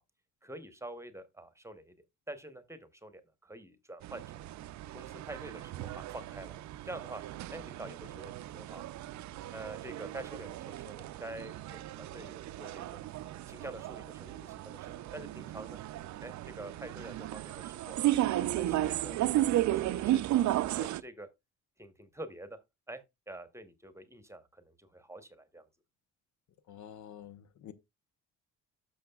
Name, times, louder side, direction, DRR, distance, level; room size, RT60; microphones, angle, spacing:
voice 1, 0.4-1.9 2.3-4.3 4.9-7.2 7.5-8.9 9.5-13.0 13.5-15.8 16.2-18.0 18.3-19.2 19.7-21.3 21.8-22.6 22.9-25.7, right 1 dB, 10° right, 1.0 m, -47 dB
sound 1, 4.0-21.0, right 14 dB, 70° right, 0.5 m, -34 dB
voice 2, 26.7-27.7, left 10 dB, 70° left, 0.8 m, -48 dB
12.5 x 6.3 x 2.3 m
cardioid pair, 90°, 30 cm